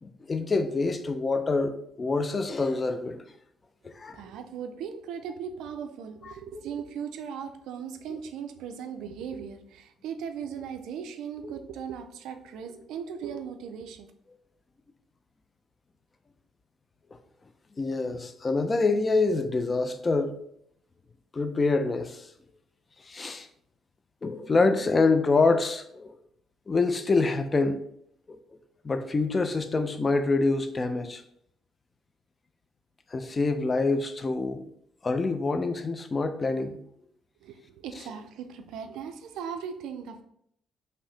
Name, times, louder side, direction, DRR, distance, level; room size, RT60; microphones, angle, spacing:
voice 1, 0.0-3.2 3.8-4.2 6.2-6.3 8.1-8.2 17.8-20.3 21.3-22.3 23.1-23.5 24.2-26.1 26.7-27.8 28.3-28.4 28.8-31.2 33.1-34.6 35.0-36.8, left 3 dB, 35° left, 0.4 m, -26 dB
voice 2, 4.1-14.1 37.4-40.2, right 7 dB, 70° right, 0.3 m, -38 dB
2.7 x 2.6 x 3.3 m
hypercardioid pair, 45°, 0 cm